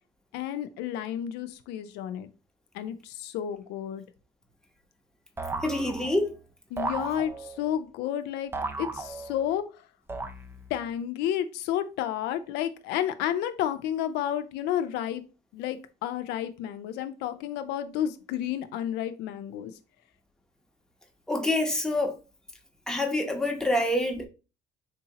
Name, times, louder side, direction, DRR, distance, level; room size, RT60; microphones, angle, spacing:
voice 1, 0.3-2.3 2.7-4.0 6.7-8.5 8.8-9.6 10.7-15.2 15.5-19.7, left 10 dB, 90° left, 0.4 m, -31 dB
sound 1, 5.4-6.3 6.8-7.7 8.5-9.6 10.1-10.8, right 3 dB, 15° right, 0.4 m, -35 dB
voice 2, 5.6-6.3 21.3-22.2 22.9-24.3, left 1 dB, 5° left, 0.8 m, -26 dB
3.7 x 2.8 x 2.8 m
cardioid pair, 110°, 17 cm